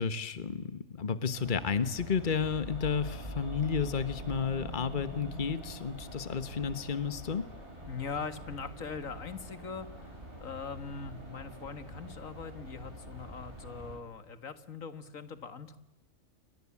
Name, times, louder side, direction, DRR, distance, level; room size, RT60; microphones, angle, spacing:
voice 1, 0.0-7.5, left 6 dB, 40° left, 13 dB, 1.4 m, -32 dB
sound 1, 1.3-14.0, right 1 dB, 45° right, 8.3 m, -48 dB
sound 2, 1.8-12.0 12.2-12.3, right 2 dB, 20° right, 7.1 m, -47 dB
voice 2, 7.8-15.8, left 5 dB, 85° left, 11 dB, 2.1 m, -41 dB
28.5 x 23.0 x 8.6 m, 0.98 s
omnidirectional pair, 1.4 m